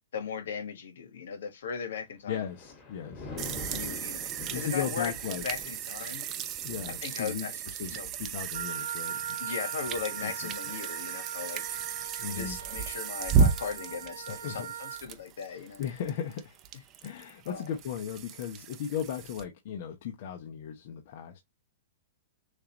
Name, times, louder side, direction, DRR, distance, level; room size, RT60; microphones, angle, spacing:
voice 1, 0.1-2.5 3.7-6.3 7.0-7.6 7.9-8.1 9.4-11.6 12.3-15.8 17.5-17.6, left 6 dB, 80° left, 1.4 m, -38 dB
Thunder, 2.2-13.5 14.0-14.3, left 3 dB, 20° left, 2.0 m, -47 dB
voice 2, 2.3-3.3 4.5-5.4 6.6-9.4 10.2-10.5 12.2-12.6 14.3-14.7 15.8-16.6 17.0-21.4, left 8 dB, 50° left, 0.9 m, -36 dB
sound 1, 3.4-19.4, right 6 dB, 25° right, 0.6 m, -34 dB
Wind instrument woodwind instrument, 8.5-15.1, right 9 dB, 80° right, 0.5 m, -40 dB
6.5 x 2.6 x 2.9 m
hypercardioid pair, 160°, 0 cm